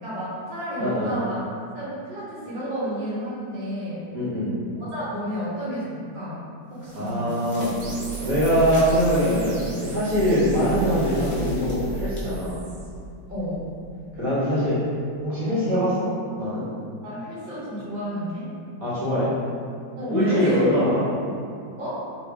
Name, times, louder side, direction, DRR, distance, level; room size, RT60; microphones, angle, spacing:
voice 1, 0.0-1.4 1.7-4.0 4.9-6.4 6.8-7.3 10.3-10.5 13.3-13.6 17.0-18.5 20.0-20.6 21.8-22.0, equal, 35° right, -9 dB, 0.9 m, -31 dB
voice 2, 0.8-1.2 4.1-4.6 6.9-7.7 8.2-12.6 14.2-14.8 15.2-16.1 16.4-16.6 18.8-19.3 20.1-21.0, equal, 55° right, -11 dB, 1.2 m, -23 dB
sound 1, 6.7-9.4 11.1-12.2, left 1 dB, 60° left, 0.5 m, -43 dB
sound 2, 7.6-14.1 14.6-14.7, right 3 dB, 80° left, 1.3 m, -34 dB
sound 3, 7.8-12.9, right 3 dB, 75° right, 0.9 m, -42 dB
3.1 x 2.6 x 3.3 m, 2.3 s
omnidirectional pair, 2.1 m